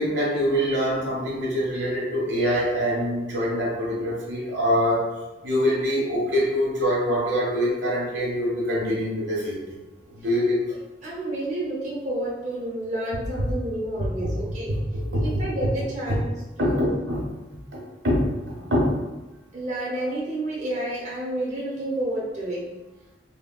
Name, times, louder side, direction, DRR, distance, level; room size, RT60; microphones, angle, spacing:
voice 1, 0.0-5.1 5.4-9.6 10.1-10.7 14.2-14.3 14.7-15.4 16.1-16.2 16.6-17.2 17.7-17.8 18.0-18.9, equal, 90° right, -4 dB, 1.1 m, -24 dB
voice 2, 11.0-14.8 15.2-16.3 16.6-16.9 19.5-22.7, right 1 dB, 45° right, -5 dB, 0.5 m, -30 dB
3.6 x 2.2 x 2.2 m, 1.1 s
head